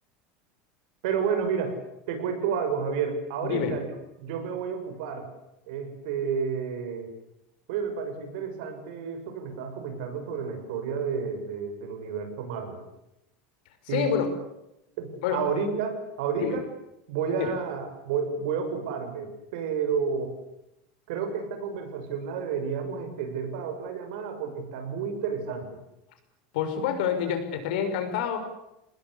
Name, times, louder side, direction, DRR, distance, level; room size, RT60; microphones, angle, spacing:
voice 1, 1.0-1.8 2.1-3.9 4.2-5.3 5.7-7.1 7.7-12.8 13.9-14.2 15.0-16.6 17.1-20.3 21.1-25.8, right 6 dB, 65° right, 6 dB, 6.7 m, -31 dB
voice 2, 3.4-3.8 13.9-14.3 15.2-15.4 16.4-16.6 17.4-17.5 26.5-28.4, left 8 dB, 65° left, 8 dB, 5.7 m, -27 dB
26.5 x 20.0 x 8.6 m, 0.85 s
supercardioid pair, 175°, 5 cm